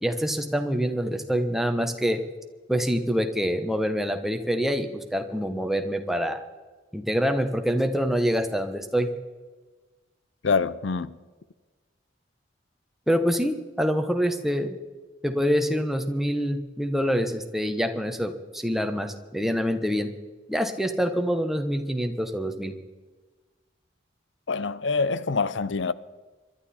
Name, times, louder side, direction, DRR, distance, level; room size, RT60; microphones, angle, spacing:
voice 1, 0.0-2.2 2.7-6.4 6.9-9.1 13.1-14.8 15.2-20.1 20.5-22.7, equal, ahead, 1.1 m, -26 dB
voice 2, 10.4-11.2 24.5-25.9, left 4 dB, 75° left, 0.6 m, -25 dB
25.0 x 11.5 x 4.3 m
head